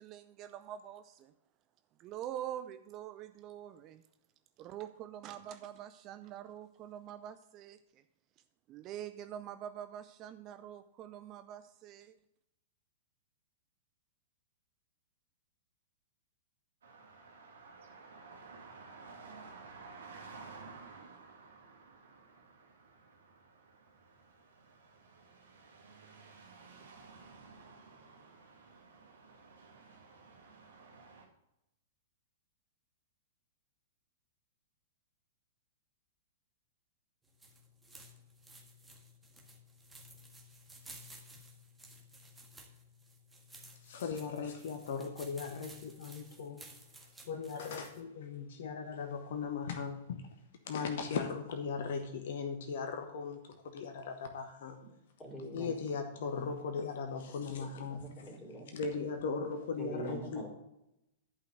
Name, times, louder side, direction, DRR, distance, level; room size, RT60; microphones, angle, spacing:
voice 1, 0.0-1.3 2.0-4.0 4.6-7.8 8.7-12.1, right 11 dB, 30° right, 10 dB, 0.6 m, -45 dB
sound 1, 16.8-31.3, right 4 dB, 65° right, 2.2 m, -54 dB
sound 2, 37.2-48.0, right 1 dB, 10° right, 1.7 m, -55 dB
voice 2, 43.9-46.6 47.3-50.3 50.7-54.8 55.5-58.3 58.7-60.5, left 5 dB, 55° left, 6 dB, 1.2 m, -38 dB
voice 3, 55.2-55.7 56.3-56.4 57.9-58.7 59.8-60.5, right 2 dB, 15° left, 0 dB, 3.8 m, -44 dB
11.0 x 5.7 x 6.4 m, 0.85 s
figure-of-eight pair, 105°, 0 cm